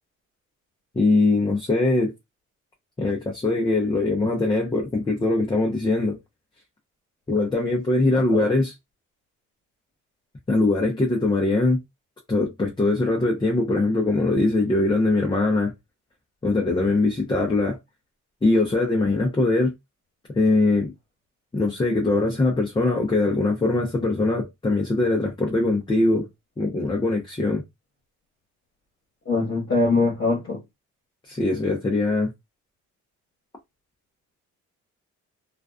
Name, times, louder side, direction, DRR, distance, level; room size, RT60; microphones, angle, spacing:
voice 1, 1.0-2.1 3.0-6.2 7.3-8.7 10.5-11.8 12.3-15.7 16.4-17.8 18.4-19.7 20.3-20.9 21.5-26.3 26.6-27.6 31.2-32.3, left 2 dB, 15° left, 0.6 m, -22 dB
voice 2, 8.1-8.5 29.2-30.6, left 3 dB, 40° left, 1.2 m, -23 dB
2.4 x 2.2 x 2.4 m
cardioid pair, 90°, 30 cm